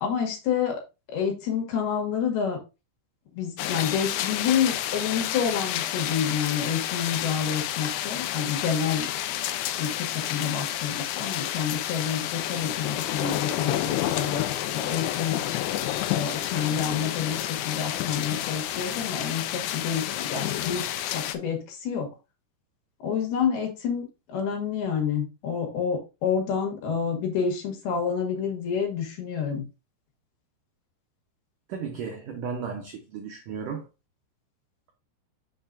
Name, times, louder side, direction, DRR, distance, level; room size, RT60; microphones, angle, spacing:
voice 1, 0.0-0.8 1.1-2.6 3.3-9.1 9.8-14.4 14.7-15.4 16.1-22.1 23.0-29.6, left 7 dB, 65° left, 3.4 m, -28 dB
sound 1, 3.6-21.4, left 12 dB, 80° left, 2.4 m, -30 dB
voice 2, 31.7-33.8, right 6 dB, 85° right, 1.8 m, -34 dB
6.9 x 6.7 x 2.7 m
omnidirectional pair, 5.3 m